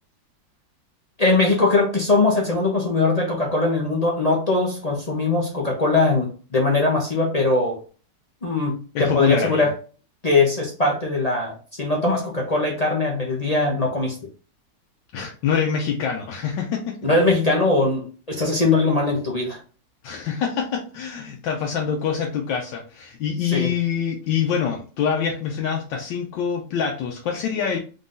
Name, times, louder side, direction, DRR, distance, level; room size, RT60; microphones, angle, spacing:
voice 1, 1.2-7.8 8.4-9.7 10.2-14.1 17.0-19.6 23.4-23.7, left 3 dB, 40° left, -1 dB, 0.5 m, -21 dB
voice 2, 8.9-9.7 15.1-17.0 18.4-18.5 20.0-27.8, left 7 dB, 80° left, 1 dB, 1.3 m, -25 dB
4.0 x 3.8 x 2.6 m, 0.37 s
omnidirectional pair, 2.0 m